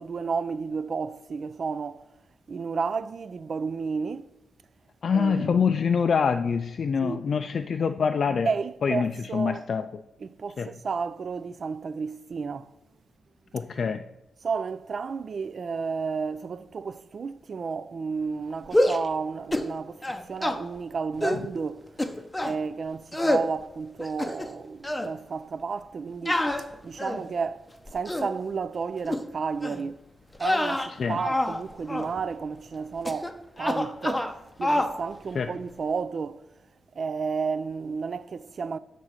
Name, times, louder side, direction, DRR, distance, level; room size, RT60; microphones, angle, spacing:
voice 1, 0.0-2.0 2.5-4.3 5.1-5.6 7.0-7.2 8.5-9.6 10.2-12.7 14.4-21.9 22.4-26.4 26.8-30.0 30.4-34.3 34.6-36.5 37.0-38.8, right 5 dB, 50° right, 0.3 m, -32 dB
voice 2, 5.0-8.5 8.8-10.0 10.6-10.7 13.5-14.0 31.0-31.2 35.4-35.5, left 6 dB, 55° left, 0.3 m, -25 dB
sound 1, 18.7-19.1 19.5-19.7 20.0-20.6 21.2-21.4 22.0-22.6 23.1-23.5 24.0-24.6 24.8-25.1 26.3-27.3 27.9-28.3 29.1-29.2 29.6-29.8 30.3-31.6 31.9-32.1 33.0-33.3 33.6-34.3 34.6-34.9, left 1 dB, 10° left, 0.6 m, -26 dB
8.0 x 3.7 x 6.3 m
wide cardioid pair, 115°, 0 cm